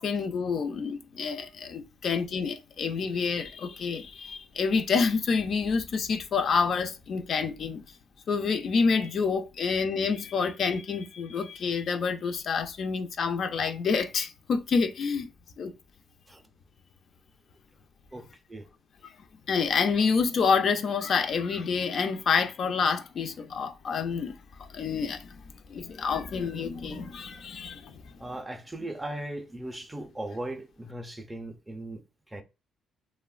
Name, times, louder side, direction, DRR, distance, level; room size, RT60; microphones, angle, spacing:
voice 1, 0.0-7.8 8.3-15.3 15.6-15.7 19.0-19.1 19.5-25.4 25.7-28.1, left 5 dB, 60° left, 0.3 m, -28 dB
voice 2, 18.1-18.7 28.2-32.4, right 1 dB, 15° right, 0.4 m, -38 dB
3.0 x 2.1 x 2.3 m
cardioid pair, 90°, 0 cm